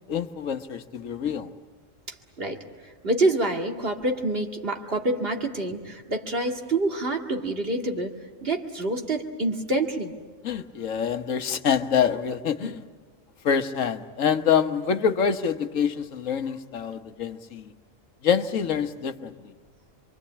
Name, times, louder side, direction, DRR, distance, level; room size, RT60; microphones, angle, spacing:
voice 1, 0.1-1.5 10.4-12.8 13.4-17.7 18.2-19.5, left 7 dB, 85° left, 9 dB, 1.5 m, -26 dB
voice 2, 2.1-2.6 3.0-10.1 10.6-10.7 12.6-12.7, right 2 dB, 50° right, 3 dB, 2.4 m, -27 dB
27.0 x 24.0 x 8.6 m, 1.4 s
omnidirectional pair, 1.3 m